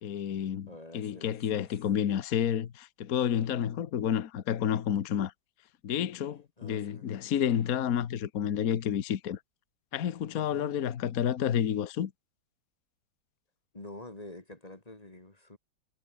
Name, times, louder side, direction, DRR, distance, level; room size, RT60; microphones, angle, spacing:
voice 1, 0.0-5.3 5.8-9.4 9.9-12.1, left 9 dB, 50° left, 1.4 m, -30 dB
voice 2, 0.7-1.7 6.6-7.1 10.4-10.8 13.7-15.6, left 2 dB, 20° left, 2.3 m, -47 dB
omnidirectional pair, 2.1 m